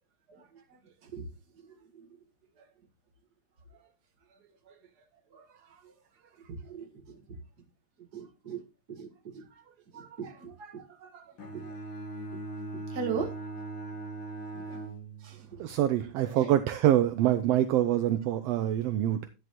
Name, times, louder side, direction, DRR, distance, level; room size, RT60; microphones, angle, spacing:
voice 1, 6.5-7.2 8.1-8.6 8.9-9.5 9.9-11.3 11.5-11.7 12.7-13.3 14.7-14.8 15.2-15.4 16.3-16.5, right 6 dB, 40° right, 3 dB, 1.8 m, -39 dB
Bowed string instrument, 11.4-15.6, right 2 dB, 50° left, 2.6 m, -40 dB
voice 2, 15.6-19.3, right 12 dB, 75° right, 11 dB, 1.5 m, -25 dB
11.5 x 10.0 x 3.0 m, 0.28 s
omnidirectional pair, 3.4 m